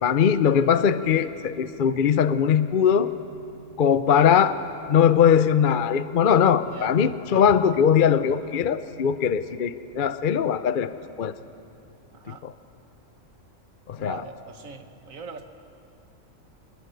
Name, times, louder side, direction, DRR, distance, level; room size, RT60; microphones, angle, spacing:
voice 1, 0.0-3.1 3.8-4.5 4.9-10.9 11.2-11.3 12.4-12.5 13.9-14.2, left 8 dB, 50° left, 12 dB, 0.7 m, -20 dB
voice 2, 6.6-7.0 7.3-7.4 12.1-12.4 14.0-15.5, right 5 dB, 80° right, 8 dB, 1.8 m, -40 dB
23.0 x 21.5 x 9.2 m, 2.7 s
omnidirectional pair, 1.4 m